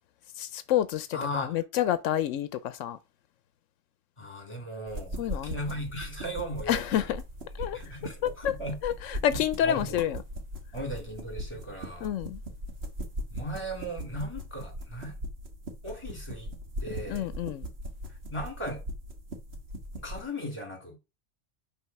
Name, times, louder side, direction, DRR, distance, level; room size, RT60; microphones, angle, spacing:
voice 1, 0.4-3.0 5.2-5.6 6.7-7.2 7.6-7.8 8.2-8.5 8.8-10.2 12.0-12.4 17.1-17.7, left 11 dB, 90° left, 1.0 m, -28 dB
voice 2, 1.1-1.6 4.2-7.1 7.6-8.8 9.3-10.0 10.7-12.1 13.3-15.2 15.8-16.5 16.8-17.3 18.3-18.8 20.0-21.0, equal, 25° left, 2.9 m, -37 dB
sound 1, 4.9-20.2, equal, 55° right, 1.7 m, -39 dB
9.2 x 3.5 x 5.8 m
omnidirectional pair, 1.3 m